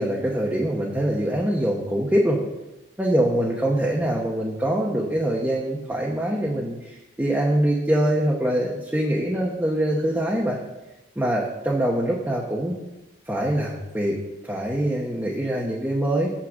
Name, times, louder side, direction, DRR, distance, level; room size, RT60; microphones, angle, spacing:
voice 1, 0.0-2.4 3.0-10.6 11.2-12.8 13.3-14.2 14.4-16.3, right 1 dB, 10° right, -4 dB, 0.9 m, -24 dB
6.5 x 6.1 x 6.4 m, 0.98 s
head